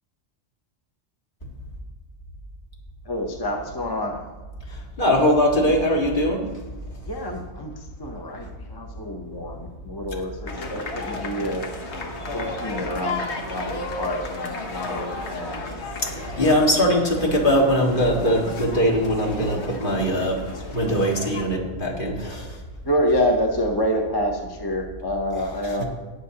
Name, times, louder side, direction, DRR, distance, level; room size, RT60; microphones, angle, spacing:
voice 1, 3.0-4.2 7.0-11.6 12.3-15.6 16.3-16.7 22.8-25.8, equal, 25° left, 2 dB, 0.7 m, -27 dB
voice 2, 4.7-6.5 16.0-20.4 20.7-22.6 25.7-25.8, equal, 45° left, -2 dB, 2.0 m, -21 dB
sound 1, 10.5-21.5, left 2 dB, 70° left, 1.4 m, -34 dB
19.0 x 6.9 x 2.8 m, 1.2 s
omnidirectional pair, 1.2 m